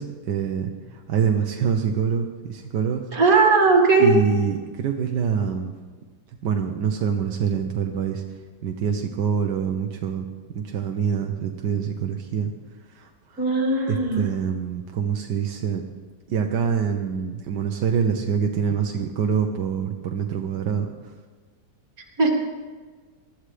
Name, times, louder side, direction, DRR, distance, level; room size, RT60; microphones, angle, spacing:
voice 1, 0.0-3.1 4.0-5.7 6.4-8.2 8.6-10.3 10.5-12.5 12.9-13.4 13.9-15.8 16.3-20.9, right 7 dB, 90° right, 3 dB, 1.5 m, -25 dB
voice 2, 3.1-4.1 13.4-14.3 22.2-22.3, right 4 dB, 60° right, 1 dB, 2.6 m, -18 dB
20.5 x 13.5 x 3.3 m, 1.4 s
omnidirectional pair, 1.8 m